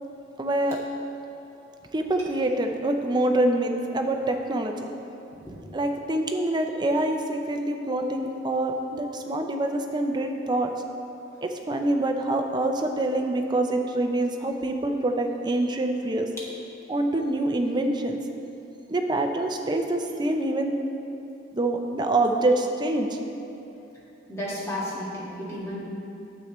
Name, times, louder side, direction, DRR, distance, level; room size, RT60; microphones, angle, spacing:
voice 1, 0.4-0.8 1.9-4.9 5.7-10.7 11.4-16.3 16.9-18.2 18.9-20.7 21.5-23.2, right 1 dB, 25° right, 4 dB, 0.5 m, -25 dB
voice 2, 24.3-25.8, left 1 dB, 15° left, -7 dB, 1.8 m, -32 dB
9.5 x 7.3 x 3.0 m, 2.9 s
head